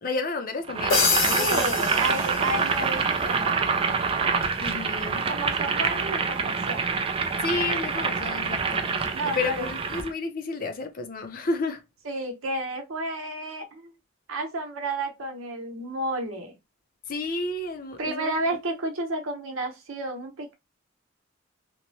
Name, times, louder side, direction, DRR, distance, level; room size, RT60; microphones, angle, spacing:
voice 1, 0.0-1.8 4.6-5.2 7.4-8.9 9.2-11.8 17.1-18.3, left 3 dB, 45° left, 0.5 m, -31 dB
Boiling, 0.7-10.1, right 5 dB, 25° right, 0.4 m, -26 dB
sound 1, 0.9-3.0, left 5 dB, 70° left, 1.1 m, -26 dB
voice 2, 1.4-4.0 5.3-6.9 9.1-9.7 12.0-13.9 14.3-16.6 18.0-20.5, right 2 dB, 85° right, 0.9 m, -31 dB
3.0 x 2.1 x 2.6 m
head